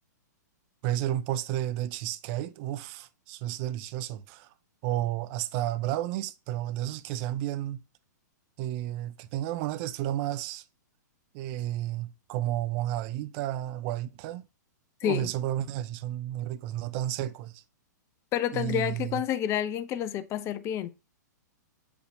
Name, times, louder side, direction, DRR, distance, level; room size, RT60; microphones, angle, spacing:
voice 1, 0.8-4.5 4.8-7.8 8.6-10.6 11.3-14.4 15.0-17.6 18.5-19.2, right 13 dB, 40° right, 0.6 m, -32 dB
voice 2, 15.0-15.3 18.3-20.9, left 10 dB, 30° left, 0.6 m, -29 dB
6.6 x 5.2 x 3.1 m
hypercardioid pair, 120°, 10 cm